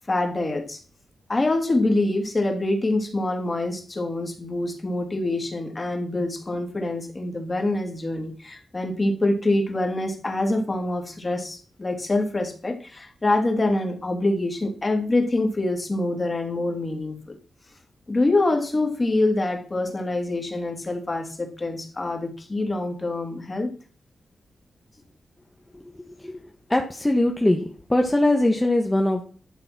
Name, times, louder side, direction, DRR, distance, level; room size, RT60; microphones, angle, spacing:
voice 1, 0.1-0.8 1.3-17.4 18.1-23.7, left 2 dB, 30° left, 4 dB, 3.2 m, -25 dB
voice 2, 26.7-27.6 27.9-29.2, left 1 dB, 15° left, 3 dB, 1.6 m, -21 dB
12.0 x 6.9 x 6.2 m, 0.41 s
cardioid pair, 70°, 0 cm